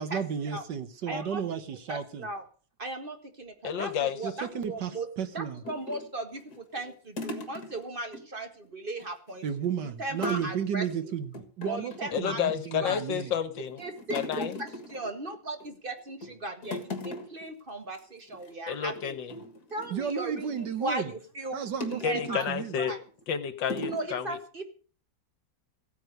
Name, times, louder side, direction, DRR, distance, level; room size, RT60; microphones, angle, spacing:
voice 1, 0.0-2.3 4.2-5.6 9.4-13.3 19.9-21.1 21.5-22.0 22.3-22.8, right 7 dB, 65° right, 11 dB, 1.7 m, -33 dB
voice 2, 1.1-1.4 1.9-2.4 2.8-5.1 5.3-9.4 10.0-10.8 11.7-12.4 12.8-13.0 13.8-19.2 19.7-20.5 20.8-21.6 21.9-22.5 22.8-23.0 23.8-24.6, right 2 dB, 30° right, 6 dB, 1.7 m, -37 dB
voice 3, 3.6-4.2 12.1-13.8 14.1-14.6 18.7-19.3 22.0-23.0 23.3-24.4, left 8 dB, 75° left, 13 dB, 1.8 m, -30 dB
sound 1, 5.6-8.2 8.5-8.7 9.0-9.7 10.2-10.6 10.8-11.0 11.3-12.2 12.7-13.2 13.5-15.7 16.1-16.4 16.6-17.5 17.8-18.0 18.3-18.5 18.9-20.7 21.8-22.5 23.1-23.2 23.7-24.1, left 2 dB, 55° left, 2.2 m, -39 dB
15.5 x 9.1 x 6.6 m, 0.41 s
omnidirectional pair, 2.1 m